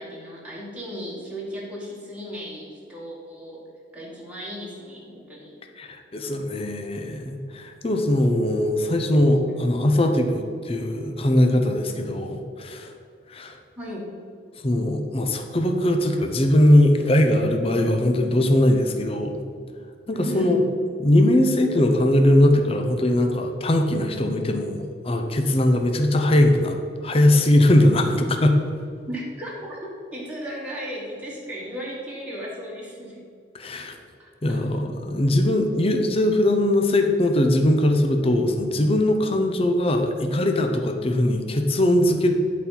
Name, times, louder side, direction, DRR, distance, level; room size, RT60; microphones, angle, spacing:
voice 1, 0.0-3.7 3.9-5.6 13.8-14.1 20.1-20.6 29.1-33.2 34.2-34.6, equal, 5° right, -5 dB, 1.7 m, -35 dB
voice 2, 5.8-12.9 13.3-13.5 14.6-19.4 20.1-20.6 21.0-28.6 33.5-33.9 34.4-42.3, left 1 dB, 30° left, 4 dB, 0.7 m, -20 dB
10.5 x 4.3 x 5.5 m, 2.4 s
head